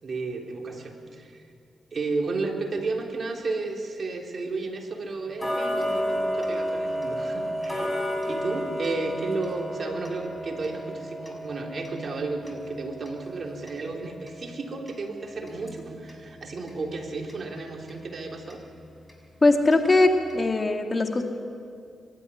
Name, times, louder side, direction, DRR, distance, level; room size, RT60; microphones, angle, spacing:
voice 1, 0.0-1.4 1.9-18.6, right 3 dB, 55° right, 1 dB, 3.5 m, -33 dB
Tick-tock, 5.4-16.2 16.7-16.8 17.3-17.4 17.9-18.0 18.5-18.6 19.1-19.2 19.7-19.8 20.3-20.4, equal, 15° left, 6.2 m, -32 dB
voice 2, 19.4-21.2, left 2 dB, 35° left, 4 dB, 2.4 m, -20 dB
24.5 x 13.0 x 10.0 m, 2.3 s
supercardioid pair, 55°, 0 cm